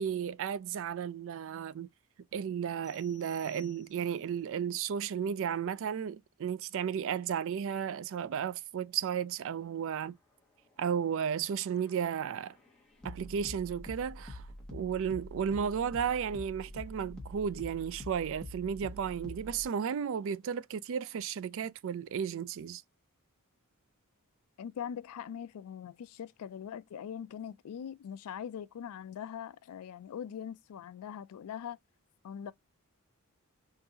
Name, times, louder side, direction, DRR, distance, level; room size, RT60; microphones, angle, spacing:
voice 1, 0.0-1.9 2.3-10.2 10.8-12.5 13.0-14.4 14.7-22.8, right 7 dB, 60° right, 0.3 m, -34 dB
sound 1, 2.8-4.4, left 8 dB, 15° right, 1.4 m, -59 dB
sound 2, 11.0-19.7, left 1 dB, 5° left, 1.1 m, -47 dB
voice 2, 24.6-31.8 32.2-32.5, left 8 dB, 75° left, 0.3 m, -42 dB
3.8 x 2.6 x 2.7 m
head